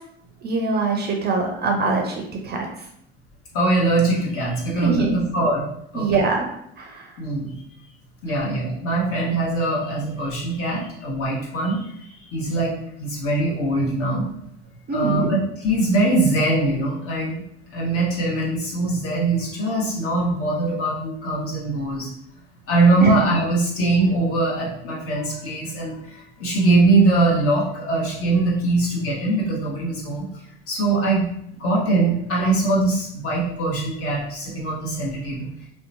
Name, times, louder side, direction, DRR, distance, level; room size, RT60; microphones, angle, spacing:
voice 1, 0.4-2.7 4.8-5.2 5.9-6.5 6.8-7.1 14.9-15.3 23.0-23.1, right 3 dB, 30° right, 1 dB, 0.5 m, -23 dB
voice 2, 3.5-5.7 5.9-6.2 7.2-7.6 8.2-11.9 12.3-14.3 14.9-17.4 17.7-22.1 22.7-30.3 30.7-31.3 31.6-35.5, right 2 dB, 45° left, -4 dB, 1.1 m, -22 dB
2.7 x 2.2 x 2.5 m, 0.72 s
hypercardioid pair, 80°, 32 cm